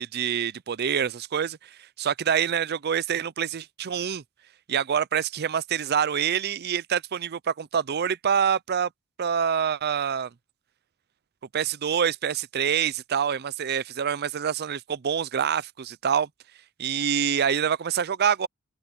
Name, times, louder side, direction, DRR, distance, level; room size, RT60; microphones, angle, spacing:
voice 1, 0.0-4.2 4.7-8.9 9.2-10.3 11.5-16.3 16.8-18.5, right 8 dB, 50° right, 0.5 m, -26 dB
head